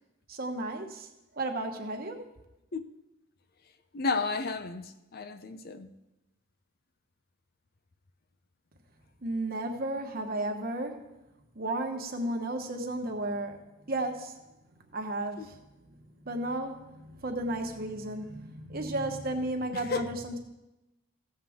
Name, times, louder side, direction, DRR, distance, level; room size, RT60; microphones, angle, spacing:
voice 1, 0.3-1.1 1.4-2.2 9.2-11.1 11.5-13.6 13.9-14.4 14.9-15.6 16.2-20.4, right 1 dB, 50° right, 1.2 m, -33 dB
voice 2, 3.9-5.9 15.4-15.5 19.7-20.1, left 4 dB, 50° left, 0.6 m, -32 dB
15.0 x 7.6 x 3.6 m
head